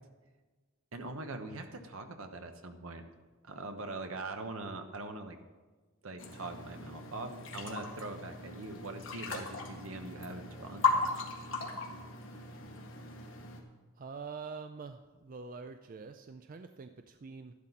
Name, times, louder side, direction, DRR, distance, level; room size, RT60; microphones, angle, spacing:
voice 1, 0.9-3.0 3.4-5.4 6.0-11.1, right 2 dB, 75° right, 6 dB, 1.1 m, -42 dB
sound 1, 6.2-13.6, left 3 dB, 60° left, 1.8 m, -37 dB
voice 2, 14.0-17.5, right 4 dB, 40° right, 8 dB, 0.4 m, -45 dB
13.0 x 11.5 x 4.2 m, 1.3 s
head